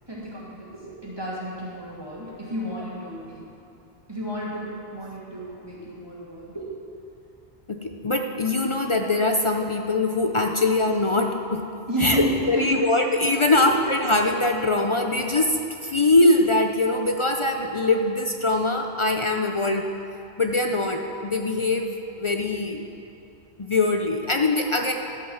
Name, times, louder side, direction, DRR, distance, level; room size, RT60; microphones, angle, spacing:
voice 1, 0.1-3.5 4.1-6.7 11.9-12.8 13.5-13.8, equal, 20° right, -6 dB, 2.4 m, -31 dB
voice 2, 7.7-11.7 12.0-19.9 20.4-22.9 23.6-24.9, left 2 dB, 40° left, 3 dB, 0.4 m, -22 dB
13.0 x 5.5 x 7.1 m, 2.8 s
omnidirectional pair, 1.1 m